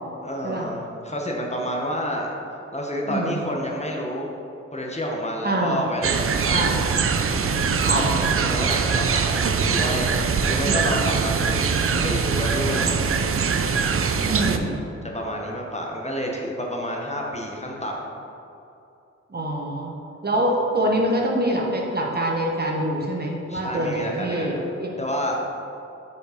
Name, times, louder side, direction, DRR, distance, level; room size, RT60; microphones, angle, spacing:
voice 1, 0.2-2.3 2.7-4.3 4.7-6.6 7.9-11.7 12.0-12.9 15.1-18.0 23.5-25.4, equal, 25° left, -1 dB, 1.0 m, -29 dB
voice 2, 3.1-3.4 5.4-5.8 6.5-6.7 7.8-8.0 10.6-10.9 14.2-14.8 19.3-19.9 20.2-24.9, right 1 dB, 35° right, -1 dB, 1.1 m, -25 dB
sound 1, 6.0-14.6, right 5 dB, 50° right, 0.5 m, -22 dB
5.3 x 4.4 x 5.0 m, 2.8 s
cardioid pair, 55°, 29 cm